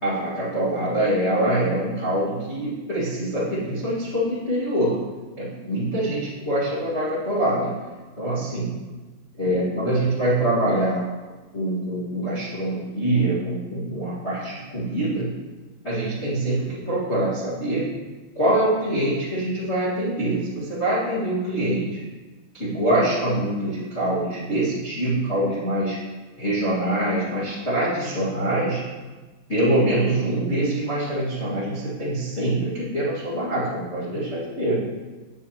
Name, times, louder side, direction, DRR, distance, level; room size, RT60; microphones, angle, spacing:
voice 1, 0.0-4.9 5.4-7.7 8.2-8.8 9.4-11.1 11.5-15.3 15.8-17.9 18.3-22.0 22.5-26.0 26.4-28.8 29.5-34.8, right 1 dB, 35° left, -11 dB, 1.0 m, -24 dB
8.7 x 6.7 x 2.9 m, 1.3 s
omnidirectional pair, 4.4 m